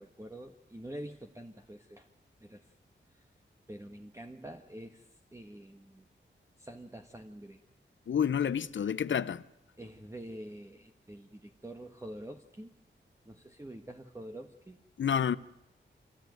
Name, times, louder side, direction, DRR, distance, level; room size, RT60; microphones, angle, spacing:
voice 1, 0.0-2.1 2.4-2.7 3.1-3.3 3.7-6.1 6.6-7.6 9.8-12.7 13.2-14.8, right 1 dB, 15° right, 1.5 m, -46 dB
voice 2, 8.1-9.4 15.0-15.4, left 8 dB, 80° left, 0.8 m, -29 dB
26.0 x 16.5 x 9.3 m
wide cardioid pair, 95°, 19 cm